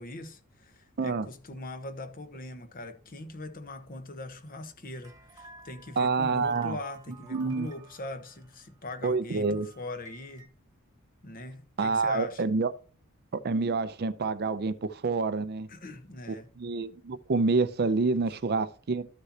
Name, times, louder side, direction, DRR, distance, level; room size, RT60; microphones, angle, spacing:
voice 1, 0.0-10.5 11.2-12.4 15.7-16.5, left 2 dB, 40° left, 1.1 m, -41 dB
sound 1, 5.0-10.5, right 3 dB, 15° right, 1.3 m, -53 dB
voice 2, 6.0-6.8 7.3-7.7 9.0-9.7 11.8-12.7 13.4-15.7 16.6-19.1, right 4 dB, 45° right, 0.5 m, -27 dB
13.0 x 6.5 x 2.8 m
head